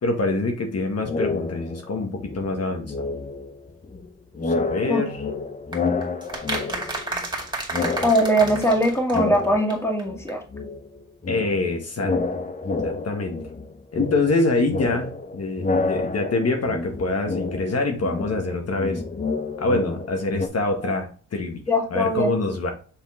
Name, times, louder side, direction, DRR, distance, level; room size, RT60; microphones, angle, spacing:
voice 1, 0.0-3.1 4.4-5.2 11.3-12.1 12.8-13.4 13.9-19.0 19.6-21.6 21.9-22.7, left 3 dB, 50° left, 3 dB, 1.3 m, -25 dB
sound 1, 1.0-1.9 2.2-4.1 4.3-7.4 7.7-10.2 10.5-20.5, left 3 dB, 25° left, 0.7 m, -29 dB
sound 2, 5.7-9.4 9.7-9.8 10.0-10.1 10.3-10.4, right 2 dB, 15° right, 2.4 m, -31 dB
voice 2, 8.0-10.4 21.7-22.5, equal, 10° left, 1 dB, 1.9 m, -21 dB
7.2 x 3.6 x 3.6 m, 0.40 s
cardioid pair, 75°, 31 cm